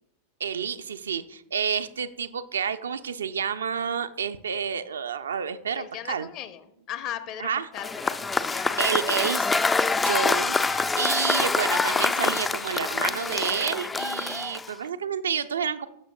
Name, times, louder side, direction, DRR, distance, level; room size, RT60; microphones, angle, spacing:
voice 1, 0.4-6.3 7.4-7.7 8.8-9.4 9.9-15.9, right 7 dB, 70° right, 10 dB, 0.4 m, -29 dB
voice 2, 5.8-9.2, left 10 dB, 40° left, 11 dB, 0.8 m, -38 dB
Cheering / Applause / Crowd, 7.8-14.9, left 4 dB, 15° left, 0.3 m, -26 dB
17.5 x 6.3 x 2.3 m, 0.79 s
figure-of-eight pair, 90°, 0 cm